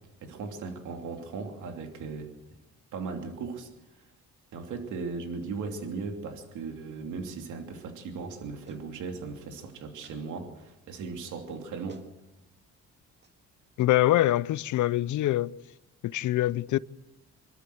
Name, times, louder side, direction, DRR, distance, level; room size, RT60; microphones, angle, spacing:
voice 1, 0.2-2.3 2.9-3.7 4.5-12.0, right 4 dB, 80° right, 2.9 m, -37 dB
Clapping, 8.7-8.9 10.0-10.2 11.5-11.6 11.9-12.1 13.2-13.4, right 4 dB, 35° right, 2.2 m, -51 dB
voice 2, 13.8-15.5 16.0-16.8, left 15 dB, 75° left, 0.7 m, -24 dB
26.0 x 13.0 x 7.8 m
cardioid pair, 90°, 30 cm